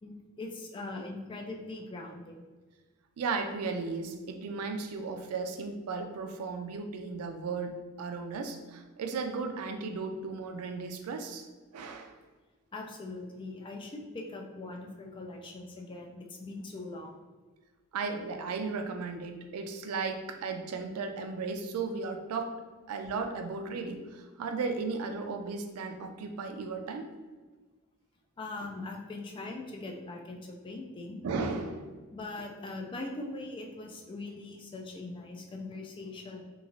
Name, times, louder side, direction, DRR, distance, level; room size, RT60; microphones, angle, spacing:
voice 1, 0.0-2.5 12.7-17.2 28.4-31.2 32.1-36.4, left 2 dB, 20° left, 1 dB, 0.3 m, -41 dB
voice 2, 3.2-11.5 11.7-12.1 17.9-22.6 22.9-27.1 31.2-31.9, right 4 dB, 80° right, 6 dB, 0.3 m, -35 dB
3.0 x 2.3 x 2.5 m, 1.3 s
head